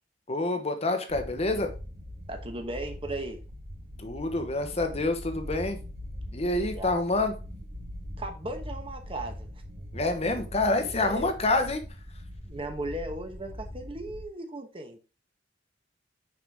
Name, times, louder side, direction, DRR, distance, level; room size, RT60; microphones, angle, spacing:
voice 1, 0.3-1.7 4.0-5.8 6.3-7.3 9.9-11.8, left 2 dB, 35° left, 1.0 m, -27 dB
sound 1, 1.1-14.2, equal, 65° right, 2.2 m, -41 dB
voice 2, 2.3-3.4 6.7-7.0 8.2-9.5 10.2-10.3 10.8-11.3 12.4-15.0, right 1 dB, 30° right, 1.2 m, -36 dB
6.1 x 5.8 x 3.6 m
head